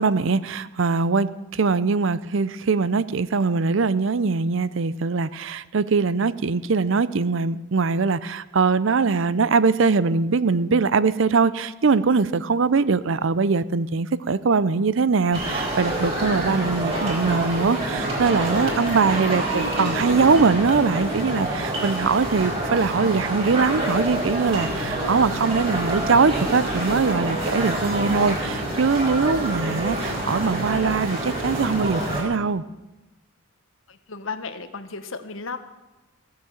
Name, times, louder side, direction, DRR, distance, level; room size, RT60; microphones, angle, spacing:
voice 1, 0.0-32.6, right 4 dB, 65° right, 16 dB, 0.5 m, -22 dB
sound 1, 15.3-32.2, right 1 dB, 30° right, 4.5 m, -27 dB
voice 2, 33.9-35.6, left 4 dB, 70° left, 10 dB, 1.1 m, -34 dB
16.0 x 8.7 x 7.2 m, 1.1 s
head